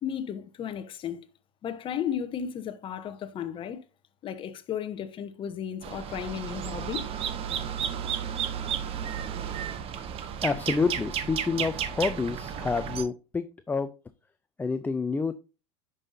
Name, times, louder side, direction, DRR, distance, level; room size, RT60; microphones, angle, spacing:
voice 1, 0.0-1.3 1.6-3.8 4.2-7.1, left 9 dB, 35° left, 1.0 m, -34 dB
sound 1, 5.8-13.0, right 8 dB, 40° right, 1.1 m, -33 dB
voice 2, 10.4-13.9 14.6-15.3, left 4 dB, 10° left, 0.4 m, -28 dB
9.8 x 5.6 x 2.6 m
supercardioid pair, 115°, 16 cm